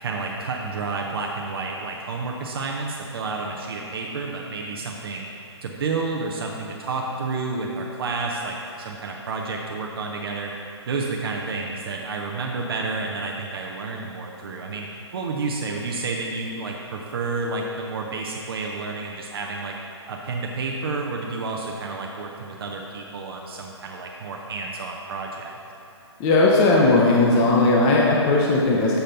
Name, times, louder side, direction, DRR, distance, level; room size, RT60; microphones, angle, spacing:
voice 1, 0.0-5.3 5.6-10.5 10.9-14.9 15.1-19.7 20.1-25.6, right 3 dB, 55° right, 0 dB, 0.7 m, -30 dB
voice 2, 26.2-29.0, left 2 dB, 25° left, -3 dB, 0.7 m, -17 dB
6.9 x 4.3 x 5.1 m, 2.8 s
hypercardioid pair, 140°, 15 cm